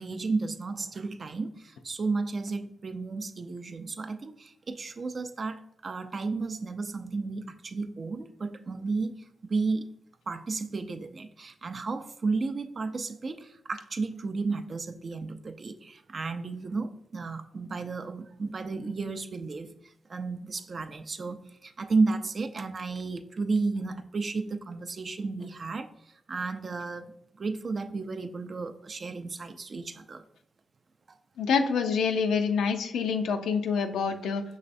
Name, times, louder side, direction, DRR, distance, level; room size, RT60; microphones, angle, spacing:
voice 1, 0.0-9.9 10.3-30.2, right 3 dB, 50° right, 9 dB, 0.4 m, -33 dB
voice 2, 31.4-34.4, left 5 dB, 85° left, 6 dB, 0.4 m, -26 dB
5.5 x 3.2 x 2.5 m, 0.79 s
supercardioid pair, 55°, 0 cm